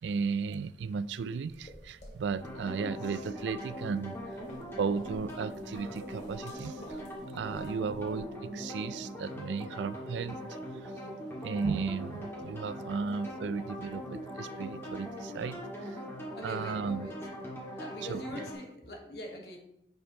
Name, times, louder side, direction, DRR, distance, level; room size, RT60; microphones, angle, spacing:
voice 1, 0.0-4.4 4.8-7.0 7.3-11.1 11.4-16.0 16.4-17.1 18.1-18.4, right 5 dB, 85° right, 0.3 m, -35 dB
sound 1, 1.5-8.2, equal, 40° left, 2.1 m, -54 dB
sound 2, 2.4-18.5, equal, 15° left, 1.9 m, -41 dB
voice 2, 2.6-3.0 16.3-17.2 17.8-19.6, left 1 dB, 65° left, 1.4 m, -43 dB
10.0 x 5.2 x 2.9 m
head